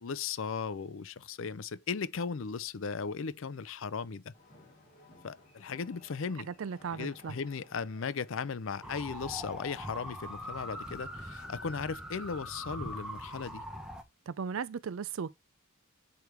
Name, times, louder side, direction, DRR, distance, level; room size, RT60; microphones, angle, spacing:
voice 1, 0.0-4.3 5.2-6.5 6.9-13.6, left 5 dB, 65° left, 0.5 m, -37 dB
sound 1, 4.3-12.4, left 2 dB, 35° left, 4.4 m, -58 dB
voice 2, 6.5-7.3 14.3-15.3, right 6 dB, 70° right, 0.4 m, -36 dB
sound 2, 8.8-14.0, equal, 5° right, 0.7 m, -42 dB
8.0 x 3.4 x 4.6 m
head